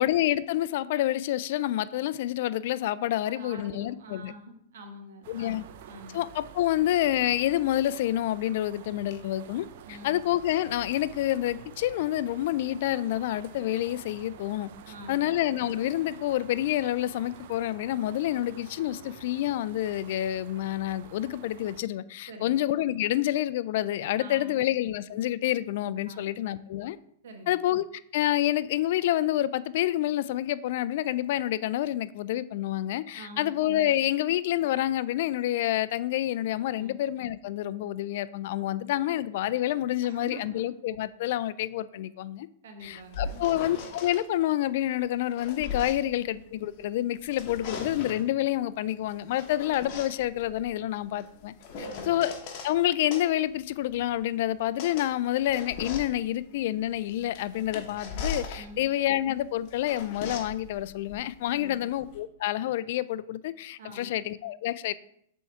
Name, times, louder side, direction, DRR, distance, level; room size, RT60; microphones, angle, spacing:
voice 1, 0.0-4.3 5.3-5.6 6.1-9.7 10.0-14.7 15.1-27.0 27.5-27.9 28.1-42.5 42.8-51.5 52.1-52.3 52.6-64.9, left 13 dB, 60° left, 0.3 m, -28 dB
voice 2, 3.3-6.2 9.8-10.2 14.9-15.3 22.3-22.6 24.1-24.7 26.1-26.2 27.2-27.6 33.1-33.6 36.7-37.0 40.0-40.6 42.6-43.4 45.9-46.2 51.8-52.2 58.5-58.9 61.5-61.8 63.8-64.2, right 2 dB, 75° right, 1.3 m, -46 dB
sound 1, 5.2-21.8, right 9 dB, 60° right, 0.5 m, -48 dB
sound 2, 42.8-44.2 45.0-46.8 47.2-48.3 49.1-52.7 53.1-62.2, left 5 dB, 45° left, 1.2 m, -40 dB
6.9 x 3.6 x 4.6 m
hypercardioid pair, 140°, 0 cm